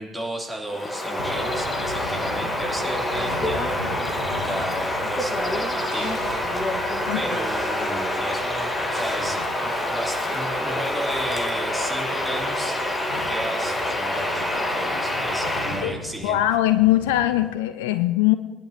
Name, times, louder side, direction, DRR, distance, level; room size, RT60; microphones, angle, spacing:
voice 1, 0.0-3.9 4.4-6.5 7.1-12.8 13.3-16.4, right 1 dB, 5° right, -3 dB, 3.0 m, -34 dB
Bird vocalization bird call bird song, 0.7-15.9, left 1 dB, 20° left, 1.5 m, -26 dB
sound 1, 1.2-17.5, left 1 dB, 85° left, 1.3 m, -39 dB
voice 2, 16.2-18.3, left 14 dB, 65° left, 12 dB, 0.4 m, -21 dB
20.5 x 10.5 x 2.8 m, 1.2 s
figure-of-eight pair, 55°, 0 cm